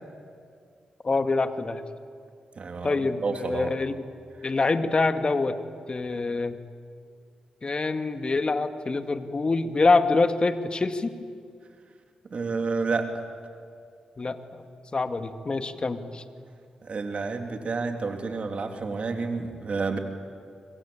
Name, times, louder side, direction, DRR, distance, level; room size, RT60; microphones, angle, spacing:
voice 1, 1.0-1.8 2.8-4.1 4.4-5.6 5.9-6.6 7.6-11.1 14.2-14.4 14.9-16.2, left 3 dB, 40° left, 8 dB, 2.1 m, -25 dB
voice 2, 2.6-3.7 12.3-13.1 16.8-20.0, right 4 dB, 55° right, 5 dB, 3.1 m, -30 dB
25.5 x 25.5 x 8.8 m, 2.3 s
supercardioid pair, 45°, 2 cm